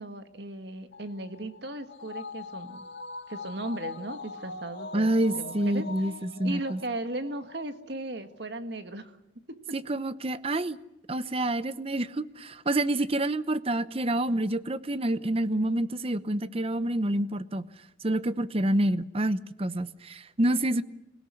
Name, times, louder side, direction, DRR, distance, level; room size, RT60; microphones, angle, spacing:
voice 1, 0.0-2.8 3.3-5.9 6.3-9.2, right 1 dB, 60° right, 8 dB, 1.8 m, -37 dB
sound 1, 0.9-7.6 7.9-8.0, left 3 dB, 70° left, 2.3 m, -42 dB
voice 2, 4.9-6.8 9.7-10.8 11.1-17.7 18.0-20.8, right 1 dB, 30° right, 14 dB, 0.8 m, -28 dB
26.5 x 17.0 x 9.8 m, 0.89 s
head